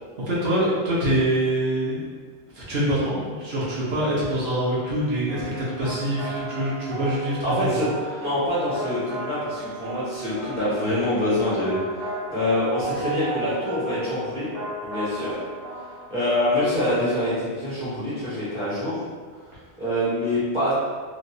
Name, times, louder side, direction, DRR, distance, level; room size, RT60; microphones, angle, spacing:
voice 1, 0.3-2.0 2.5-7.4, right 1 dB, 65° right, -7 dB, 1.1 m, -25 dB
sound 1, 5.3-16.9, right 2 dB, 10° right, 1.2 m, -34 dB
voice 2, 7.4-7.9 8.2-11.7 12.3-14.5 14.8-15.3 16.1-19.0 19.8-20.7, left 1 dB, 25° left, -12 dB, 1.4 m, -25 dB
3.1 x 3.0 x 2.6 m, 1.5 s
omnidirectional pair, 1.1 m